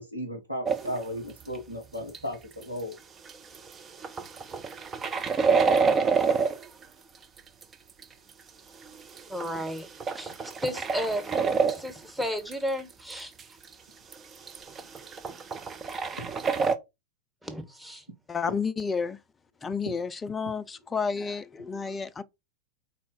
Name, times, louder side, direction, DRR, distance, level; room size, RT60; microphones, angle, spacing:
voice 1, 0.0-3.0 10.3-10.4 16.2-16.3, equal, 85° right, 2.2 m, -35 dB
sound 1, 0.7-1.0 1.5-1.6 2.1-2.2 2.6-2.7 2.9-3.0 3.3-3.7 4.0-6.8 7.4-8.0 8.9-12.0 12.2-12.5 12.8-12.9 13.1-13.2 13.4-13.5 13.7-13.8 14.1-14.2 14.5-16.7, right 5 dB, 20° right, 0.8 m, -27 dB
voice 2, 9.3-9.9 10.1-11.4 11.6-13.3 17.4-18.0, equal, 5° right, 1.4 m, -33 dB
voice 3, 18.3-19.2 19.6-22.2, left 5 dB, 15° left, 0.5 m, -31 dB
4.3 x 4.2 x 5.5 m
figure-of-eight pair, 90°, 0 cm